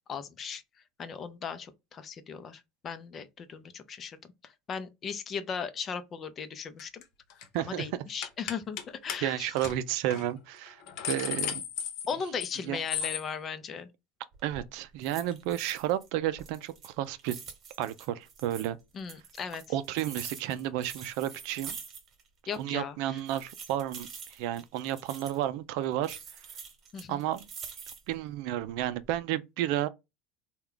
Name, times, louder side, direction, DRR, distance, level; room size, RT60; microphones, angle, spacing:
voice 1, 0.1-0.6 1.0-7.0 7.6-9.5 12.1-13.9 18.9-19.6 22.5-23.0 26.9-27.2, left 6 dB, 40° left, 0.6 m, -37 dB
sound 1, 6.8-7.0 7.3-7.6 8.2-8.8 9.1-9.2 9.6-9.7 10.1-10.2 10.7-12.6 12.9-13.2, left 9 dB, 65° left, 0.8 m, -34 dB
voice 2, 7.5-7.9 9.2-10.8 11.1-11.6 12.7-12.8 14.4-17.4 17.8-18.8 19.7-21.8 22.5-26.4 27.1-27.5 28.1-29.9, right 12 dB, 70° right, 0.4 m, -32 dB
sound 2, 14.3-14.7 15.0-16.1 16.4-18.7 19.1-22.3 22.5-22.6 23.2-25.4 26.0-28.2 28.7-29.2, right 6 dB, 45° right, 1.1 m, -45 dB
3.3 x 2.3 x 3.7 m
supercardioid pair, 100°, 0 cm